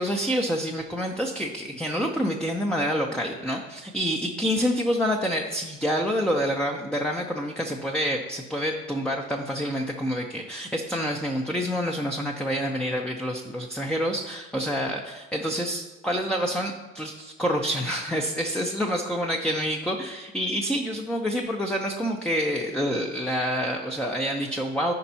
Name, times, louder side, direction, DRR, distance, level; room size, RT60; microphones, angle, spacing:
voice 1, 0.0-24.9, equal, ahead, 1 dB, 0.7 m, -27 dB
14.5 x 5.2 x 2.9 m, 1.2 s
hypercardioid pair, 70°, 39 cm